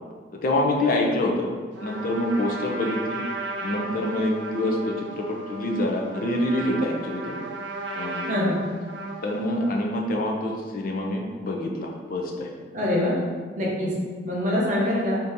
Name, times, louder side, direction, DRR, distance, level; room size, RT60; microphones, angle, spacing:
voice 1, 0.4-1.5 1.8-3.2 3.6-7.3 7.9-8.4 9.2-12.5 13.8-13.9, left 1 dB, 50° left, 0 dB, 0.5 m, -26 dB
Trumpet, 1.7-9.9, right 2 dB, 85° right, 0.6 m, -35 dB
voice 2, 8.3-8.6 12.7-13.1 13.6-13.9 14.2-15.2, left 1 dB, 45° right, -4 dB, 0.8 m, -24 dB
2.8 x 2.6 x 3.5 m, 1.5 s
head